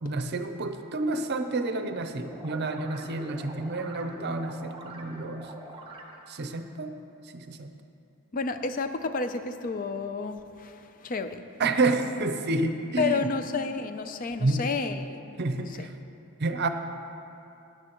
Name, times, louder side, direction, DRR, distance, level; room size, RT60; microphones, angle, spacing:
voice 1, 0.0-5.5 6.3-6.9 7.3-7.7 11.6-13.2 14.4-14.7 15.4-15.9 16.4-16.7, right 2 dB, 50° right, 7 dB, 0.6 m, -29 dB
sound 1, 2.0-6.4, right 1 dB, 25° right, 1.0 m, -44 dB
voice 2, 8.3-11.4 13.0-15.9, left 4 dB, 40° left, 9 dB, 0.5 m, -31 dB
16.5 x 9.9 x 3.0 m, 2.7 s
head